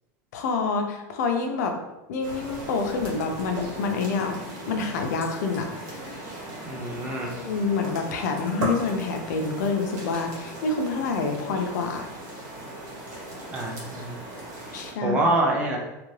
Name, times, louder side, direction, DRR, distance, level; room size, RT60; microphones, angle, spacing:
voice 1, 0.3-1.7 2.1-4.4 4.7-6.2 7.3-12.1 14.7-15.2, left 4 dB, 75° left, 4 dB, 0.5 m, -27 dB
sound 1, 2.2-14.9, right 1 dB, 90° right, 1.2 m, -37 dB
voice 2, 6.7-7.3 13.5-14.2 15.0-15.8, right 2 dB, 15° right, -1 dB, 0.4 m, -25 dB
2.7 x 2.5 x 3.1 m, 0.98 s
supercardioid pair, 180°, 9 cm